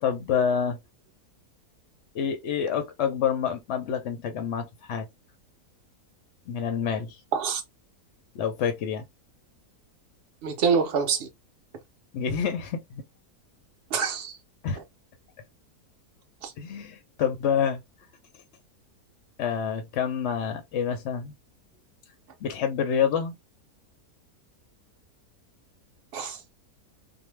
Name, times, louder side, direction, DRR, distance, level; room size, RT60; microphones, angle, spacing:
voice 1, 0.0-0.8 2.1-5.1 6.5-7.2 8.3-9.0 12.1-13.0 14.6-14.8 16.6-17.8 19.4-21.3 22.4-23.3, left 7 dB, 65° left, 0.7 m, -27 dB
voice 2, 10.4-11.3 13.9-14.3 16.4-16.5 26.1-26.4, right 6 dB, 65° right, 0.6 m, -25 dB
2.6 x 2.1 x 3.1 m
omnidirectional pair, 1.7 m